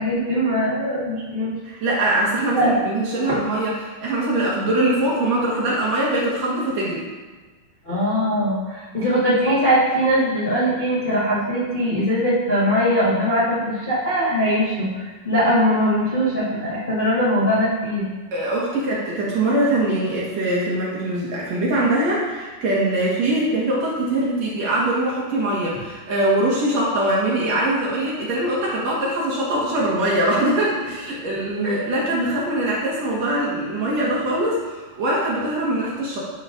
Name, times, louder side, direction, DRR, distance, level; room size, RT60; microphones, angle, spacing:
voice 1, 0.0-1.5 2.5-2.8 3.3-3.4 7.8-18.1 31.6-31.7, equal, 45° left, -11 dB, 0.6 m, -21 dB
voice 2, 1.6-7.1 18.3-36.2, right 1 dB, 55° right, -7 dB, 2.4 m, -22 dB
11.0 x 5.2 x 2.6 m, 1.3 s
omnidirectional pair, 4.1 m